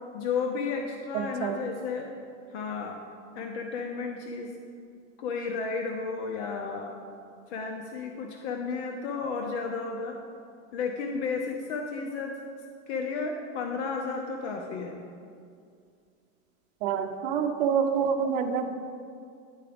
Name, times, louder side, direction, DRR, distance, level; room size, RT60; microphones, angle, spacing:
voice 1, 0.1-2.1 2.5-3.0 3.3-4.5 5.2-6.9 7.5-10.2 10.7-12.3 12.9-15.0, left 5 dB, 60° left, 2 dB, 0.8 m, -33 dB
voice 2, 1.1-1.6 16.8-18.7, right 7 dB, 50° right, 5 dB, 0.7 m, -27 dB
10.0 x 4.7 x 5.2 m, 2.3 s
supercardioid pair, 145°, 39 cm